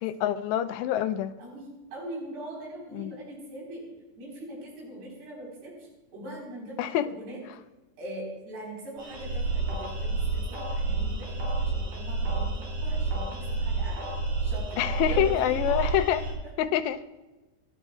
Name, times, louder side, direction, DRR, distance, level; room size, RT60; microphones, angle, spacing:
voice 1, 0.0-1.3 2.9-3.1 6.8-7.1 14.8-16.3 16.6-17.0, left 11 dB, 90° left, 10 dB, 2.9 m, -26 dB
voice 2, 1.4-3.8 4.2-7.4 8.0-14.1 14.4-15.6 16.4-16.5, right 1 dB, 75° right, -3 dB, 6.3 m, -41 dB
sound 1, 9.0-16.3, right 3 dB, 50° right, 4.4 m, -30 dB
26.0 x 12.0 x 2.4 m, 1.1 s
omnidirectional pair, 4.8 m